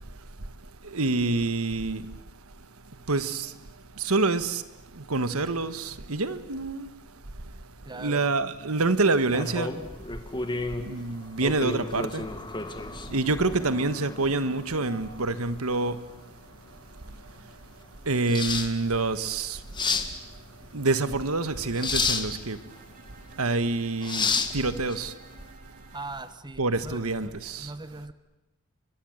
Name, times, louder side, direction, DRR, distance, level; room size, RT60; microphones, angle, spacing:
voice 1, 0.8-2.1 3.1-3.5 4.0-4.6 4.9-6.9 8.0-9.7 10.8-12.3 13.1-16.0 18.0-19.6 20.7-22.6 23.4-25.1 26.6-27.7, right 3 dB, 75° right, 1.5 m, -27 dB
voice 2, 7.8-8.3 25.9-27.0 27.6-28.1, right 2 dB, 20° right, 1.2 m, -40 dB
sound 1, 9.3-25.5, left 4 dB, 20° left, 1.9 m, -33 dB
Bowed string instrument, 22.1-26.3, right 4 dB, 40° right, 3.7 m, -54 dB
30.0 x 24.5 x 8.0 m
head